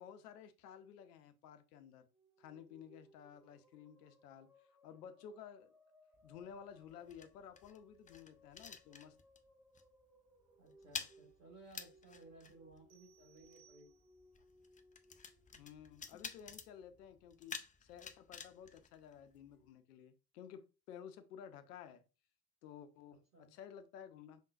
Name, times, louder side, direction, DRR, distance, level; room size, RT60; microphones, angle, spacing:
voice 1, 0.0-2.1 2.4-4.5 4.8-5.7 6.2-9.2 15.5-22.0 22.6-24.4, left 8 dB, 75° left, 0.7 m, -54 dB
sound 1, 2.0-16.5, equal, 5° right, 1.7 m, -67 dB
sound 2, 6.1-9.5 9.7-10.0 10.3-19.7, left 5 dB, 15° left, 0.5 m, -51 dB
voice 2, 10.6-13.9 23.3-23.5, right 2 dB, 85° right, 2.3 m, -60 dB
sound 3, 12.9-14.4, right 13 dB, 65° right, 0.9 m, -69 dB
5.4 x 3.7 x 2.5 m
figure-of-eight pair, 55°, 48 cm